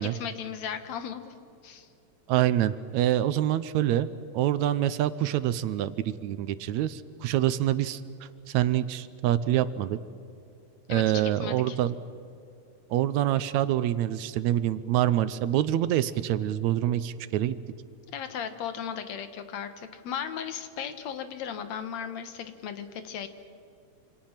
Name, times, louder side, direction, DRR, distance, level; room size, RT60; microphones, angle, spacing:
voice 1, 0.0-1.3 1.6-1.9 10.9-11.0 11.4-11.8 18.1-23.3, left 8 dB, 70° left, 9 dB, 2.5 m, -36 dB
voice 2, 2.3-8.0 8.5-10.0 10.9-12.0 12.9-17.6, right 12 dB, 80° right, 14 dB, 2.1 m, -26 dB
27.0 x 26.0 x 5.9 m, 2.5 s
omnidirectional pair, 3.3 m